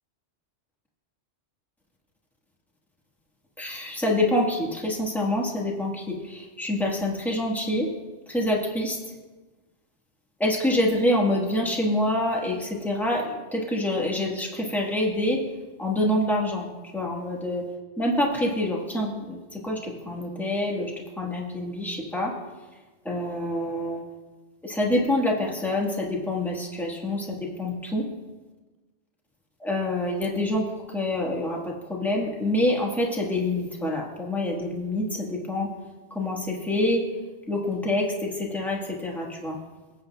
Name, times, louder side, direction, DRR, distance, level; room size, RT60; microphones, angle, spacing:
voice 1, 3.6-7.9 8.3-9.0 10.4-15.4 15.8-17.6 18.0-20.9 21.2-22.3 23.0-24.0 24.6-28.1 29.6-30.6 30.9-35.7 36.1-37.0 37.5-39.6, left 1 dB, ahead, -2 dB, 1.4 m, -26 dB
21.0 x 8.0 x 2.3 m, 1.2 s
omnidirectional pair, 1.2 m